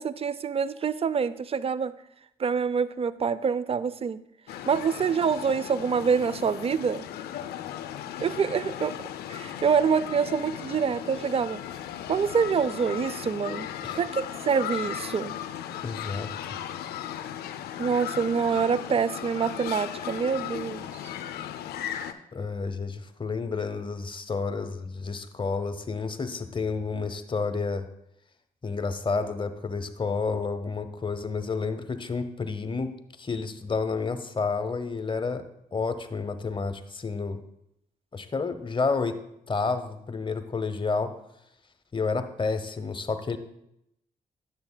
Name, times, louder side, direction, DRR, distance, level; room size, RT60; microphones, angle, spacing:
voice 1, 0.0-1.9 2.4-4.2 4.7-7.1 8.2-9.0 9.3-11.6 12.1-13.7 14.0-15.3 17.8-21.1, right 6 dB, 40° right, 17 dB, 0.4 m, -26 dB
sound 1, 4.5-22.1, left 10 dB, 80° left, 0.4 m, -37 dB
voice 2, 15.8-16.3 22.3-27.8 28.6-32.9 33.2-35.4 35.7-37.4 38.1-39.1 39.5-41.1 41.9-43.4, left 4 dB, 30° left, 9 dB, 0.8 m, -30 dB
10.5 x 7.1 x 2.2 m, 0.79 s
supercardioid pair, 50°, 16 cm